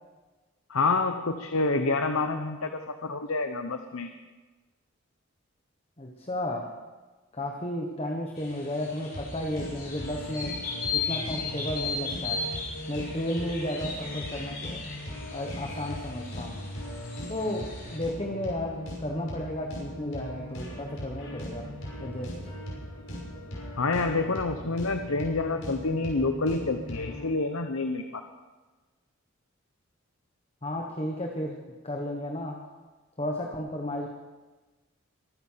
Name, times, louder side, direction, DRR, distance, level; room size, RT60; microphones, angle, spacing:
voice 1, 0.7-2.7 3.0-4.1 23.8-28.2, left 3 dB, 80° left, 7 dB, 0.9 m, -28 dB
voice 2, 6.0-6.7 7.3-10.6 10.9-12.5 12.9-14.8 15.3-16.6 17.3-21.7 22.0-22.3 30.6-31.6 31.8-32.6 33.2-34.1, left 1 dB, 30° left, 1 dB, 1.3 m, -33 dB
sound 1, 8.3-18.0, left 4 dB, 45° left, 5.2 m, -37 dB
sound 2, 9.1-27.3, equal, 65° left, 5.8 m, -39 dB
23.5 x 9.6 x 5.8 m, 1.2 s
head